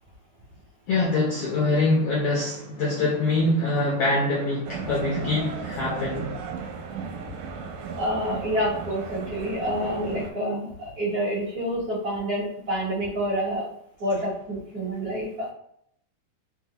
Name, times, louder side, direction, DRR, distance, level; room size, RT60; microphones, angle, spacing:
voice 1, 0.9-6.7, left 2 dB, 75° left, -5 dB, 1.4 m, -24 dB
sound 1, 4.6-10.3, right 5 dB, 80° right, 1.9 m, -35 dB
voice 2, 8.0-13.7 14.0-15.5, equal, 50° right, -9 dB, 1.1 m, -28 dB
4.6 x 2.0 x 2.8 m, 0.70 s
omnidirectional pair, 3.3 m